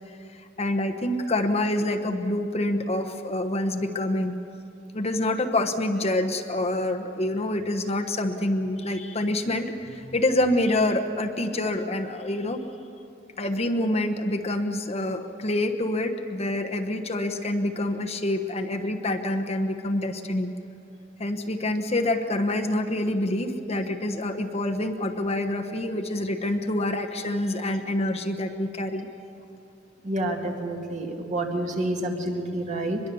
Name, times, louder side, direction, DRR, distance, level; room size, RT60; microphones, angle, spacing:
voice 1, 0.1-4.3 4.9-12.6 13.4-20.5 21.2-29.1, left 1 dB, 35° left, 5 dB, 1.1 m, -27 dB
voice 2, 30.0-33.0, right 1 dB, 40° right, 1 dB, 2.4 m, -28 dB
23.5 x 22.0 x 7.0 m, 2.5 s
head